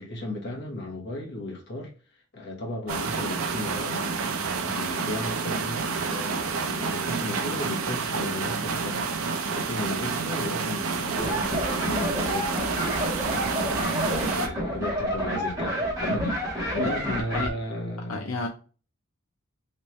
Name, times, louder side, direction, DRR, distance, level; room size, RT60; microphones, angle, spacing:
voice 1, 0.0-1.9 2.3-4.0 4.6-9.1 9.5-13.2 14.0-18.2, left 1 dB, 55° left, 1.1 m, -35 dB
sound 1, 2.9-14.5, right 5 dB, 80° right, 0.6 m, -29 dB
sound 2, 11.2-17.5, equal, 15° right, 1.2 m, -29 dB
voice 2, 18.1-18.5, left 3 dB, 80° left, 0.6 m, -30 dB
3.2 x 3.0 x 3.0 m
head